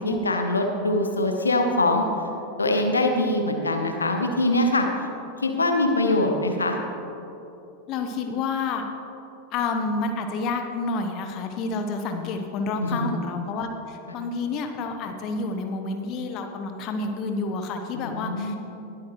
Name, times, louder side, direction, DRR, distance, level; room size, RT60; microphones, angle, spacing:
voice 1, 0.0-2.0 2.6-4.9 5.4-6.8 12.8-13.2 17.9-18.6, left 2 dB, 80° left, 4 dB, 1.0 m, -23 dB
voice 2, 7.9-8.8 9.5-18.6, left 3 dB, 40° left, 5 dB, 0.9 m, -29 dB
20.5 x 8.4 x 3.1 m, 3.0 s
figure-of-eight pair, 85°, 0 cm